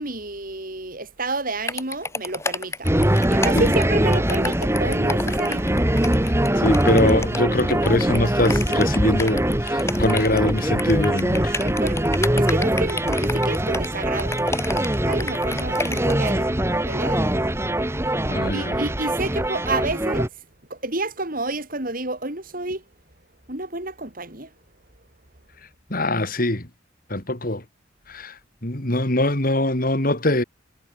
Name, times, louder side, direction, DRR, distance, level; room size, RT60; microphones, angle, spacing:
voice 1, 0.0-5.6 11.6-12.1 12.4-14.4 15.0-16.5 16.9-17.4 18.5-20.3 20.7-22.8 23.5-24.5, right 2 dB, 45° right, 4.5 m, -29 dB
sound 1, 1.7-16.3, left 3 dB, 15° left, 7.4 m, -31 dB
sound 2, 2.8-20.3, right 1 dB, 15° right, 2.1 m, -22 dB
voice 2, 6.6-11.6 18.3-18.8 25.9-26.7 27.1-27.6 28.1-28.3 28.6-30.4, left 1 dB, 45° left, 3.4 m, -22 dB
head